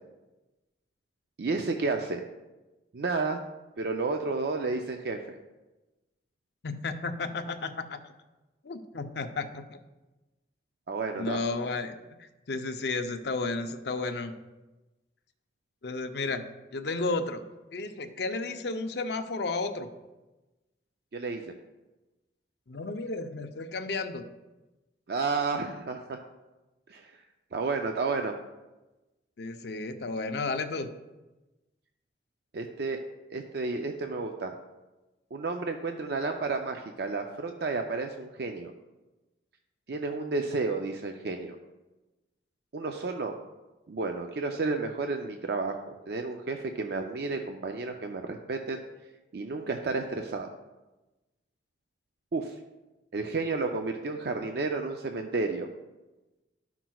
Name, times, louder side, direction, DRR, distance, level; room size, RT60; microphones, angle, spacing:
voice 1, 1.4-2.2 2.9-3.4 3.8-5.4 10.9-11.4 21.1-21.4 25.1-26.2 26.9-27.1 27.5-28.3 32.5-33.0 33.3-34.5 35.3-38.7 39.9-41.6 42.7-43.3 43.9-48.8 49.3-50.5 52.3-52.6 53.1-55.7, right 3 dB, 55° right, 4 dB, 0.4 m, -31 dB
voice 2, 6.6-8.0 8.6-9.8 11.2-14.3 15.8-17.4 17.7-19.9 22.7-24.2 29.4-30.9, left 3 dB, 60° left, 8 dB, 0.6 m, -33 dB
12.5 x 5.9 x 2.3 m, 1.1 s
head